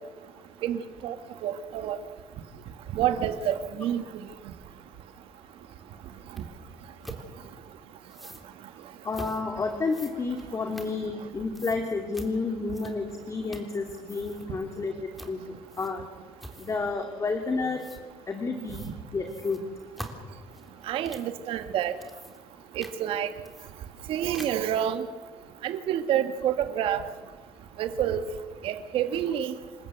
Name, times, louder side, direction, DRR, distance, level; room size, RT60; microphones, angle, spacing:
voice 1, 0.6-1.2 1.4-2.0 2.9-4.0 20.9-22.0 22.8-23.3 24.1-25.1 25.6-27.0 27.8-28.2 28.6-29.5, right 10 dB, 75° right, 9 dB, 1.7 m, -28 dB
sound 1, 6.4-6.5 7.0-7.2 8.1-8.5 9.1-9.4 9.9-11.3 11.5-11.8 12.1-12.3 12.7-13.1 13.5-13.8 14.0-14.5 15.1-15.4 15.7-16.1 16.4-16.8 17.8-18.0 18.7-18.9 19.3-21.3 21.8-22.5 22.8-23.0 23.4-24.1 24.3-24.7, equal, ahead, 3.5 m, -44 dB
voice 2, 9.0-15.4 15.8-16.0 16.6-17.8 18.3-19.6, left 4 dB, 30° left, 4 dB, 2.6 m, -30 dB
27.5 x 14.0 x 8.3 m, 1.5 s
supercardioid pair, 85°, 10 cm